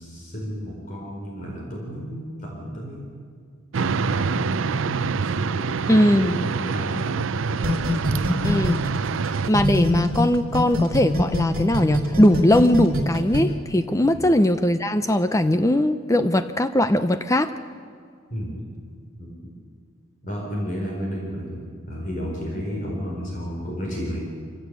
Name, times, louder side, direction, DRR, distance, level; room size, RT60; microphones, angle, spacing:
voice 1, 0.0-3.1 3.7-5.8 6.2-7.8 14.1-14.3 18.3-18.6 19.2-19.3 20.2-21.6 21.9-24.2, equal, 40° left, -2 dB, 4.6 m, -32 dB
sound 1, 3.7-9.5, right 5 dB, 65° right, 0.5 m, -26 dB
voice 2, 5.9-6.5 8.4-8.8 9.5-17.5, left 1 dB, 15° left, 10 dB, 0.6 m, -20 dB
sound 2, 7.6-10.2 10.5-13.4, left 1 dB, 45° right, 3.7 m, -23 dB
26.0 x 16.0 x 8.3 m, 2.2 s
head